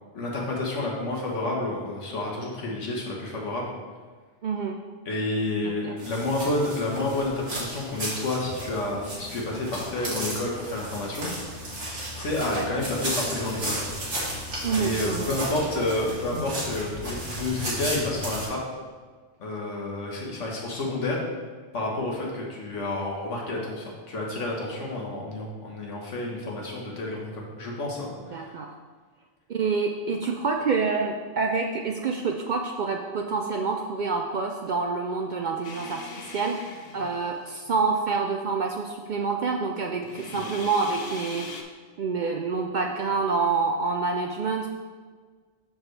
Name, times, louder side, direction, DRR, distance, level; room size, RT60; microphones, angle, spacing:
voice 1, 0.1-3.7 5.0-11.3 12.1-13.8 14.8-18.6 19.4-21.2 21.7-28.5 40.3-40.4, left 2 dB, 85° left, -2 dB, 1.6 m, -30 dB
voice 2, 4.4-4.8 5.6-6.0 12.5-12.7 14.6-15.3 28.3-28.7 29.5-41.7 42.0-44.7, right 4 dB, 60° right, 2 dB, 0.5 m, -27 dB
sound 1, 6.0-18.5, equal, 85° right, 2.2 m, -34 dB
sound 2, 35.6-37.7 40.0-41.6, left 4 dB, 50° left, 0.5 m, -41 dB
6.4 x 6.2 x 3.3 m, 1.5 s
omnidirectional pair, 1.2 m